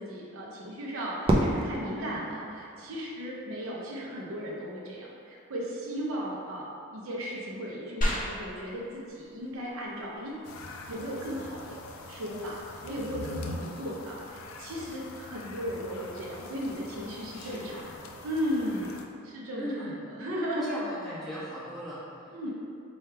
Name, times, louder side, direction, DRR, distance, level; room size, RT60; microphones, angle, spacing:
voice 1, 0.0-10.6 10.9-19.7 20.0-20.7 22.3-22.5, equal, 70° right, -4 dB, 0.6 m, -36 dB
Fireworks, 1.2-3.5, right 1 dB, 25° right, 0.4 m, -29 dB
sound 1, 8.0-18.0, equal, 40° left, 0.7 m, -40 dB
sound 2, 10.4-19.1, left 2 dB, 70° left, 0.4 m, -43 dB
voice 2, 17.3-17.9 19.5-20.0 20.6-22.5, equal, ahead, -13 dB, 1.1 m, -39 dB
3.3 x 2.3 x 4.4 m, 2.5 s
head